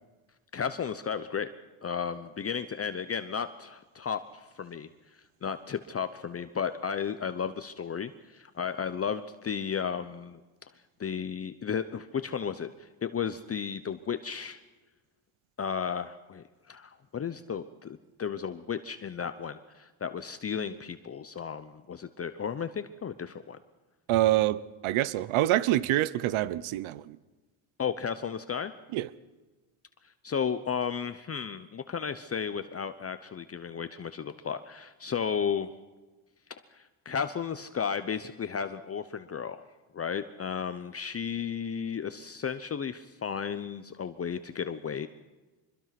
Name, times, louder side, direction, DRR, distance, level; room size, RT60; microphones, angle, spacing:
voice 1, 0.5-1.5 1.8-10.4 11.0-14.6 15.6-23.6 27.8-28.7 30.2-35.7 36.7-39.6 39.9-45.1, left 7 dB, 30° left, 0.9 m, -34 dB
voice 2, 24.1-27.2 28.9-29.1, right 15 dB, 75° right, 1.0 m, -26 dB
25.0 x 22.0 x 6.0 m
cardioid pair, 120°, 49 cm